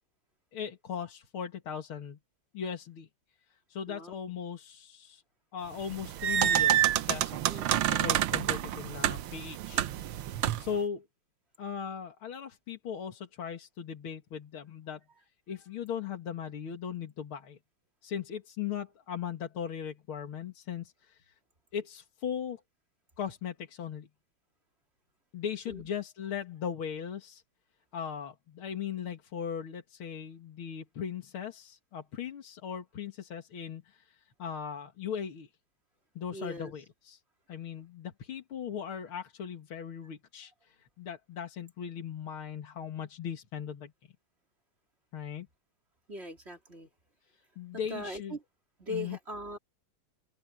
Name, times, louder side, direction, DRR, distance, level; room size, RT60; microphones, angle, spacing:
voice 1, 0.5-2.2 2.5-3.1 3.7-5.2 5.5-11.1 11.6-15.0 15.5-17.6 18.0-21.3 21.7-22.6 23.2-24.1 25.3-27.4 27.9-35.5 36.2-37.2 37.5-43.9 45.1-45.5 47.6-48.4 48.9-49.2, left 8 dB, 85° left, 2.7 m, -38 dB
sound 1, 5.8-10.8, right 11 dB, 80° right, 1.7 m, -28 dB
voice 2, 7.5-7.8 25.7-25.8 36.3-36.7 46.1-46.9 47.9-48.4 48.8-49.6, left 1 dB, 30° right, 3.9 m, -40 dB
open air
omnidirectional pair, 2.3 m